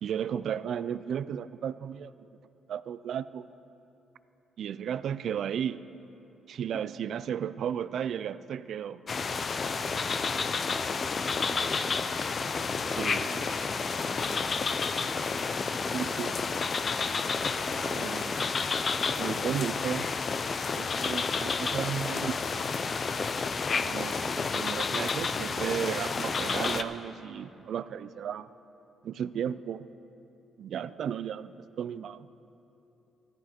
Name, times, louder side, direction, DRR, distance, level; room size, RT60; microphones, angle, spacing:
voice 1, 0.0-2.1 2.7-3.5 4.6-5.8 6.5-9.0 12.9-13.4 15.9-16.3 17.8-18.4 19.2-20.1 20.8-22.7 23.8-28.5 29.0-29.9 30.6-32.3, right 8 dB, 65° right, 16 dB, 0.3 m, -34 dB
sound 1, 9.1-26.8, left 4 dB, 40° left, 0.5 m, -30 dB
voice 2, 11.5-12.1 13.0-14.6 15.5-16.4, right 1 dB, 5° right, 3 dB, 0.9 m, -46 dB
14.5 x 13.0 x 4.4 m, 3.0 s
cardioid pair, 90°, 0 cm